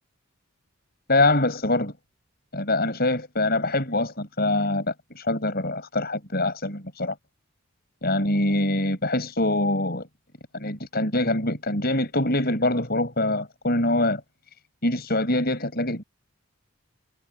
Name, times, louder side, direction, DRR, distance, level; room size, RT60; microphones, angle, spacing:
voice 1, 1.1-1.9 2.5-7.1 8.0-10.1 10.5-14.2 14.8-16.0, left 2 dB, 45° left, 7.8 m, -24 dB
head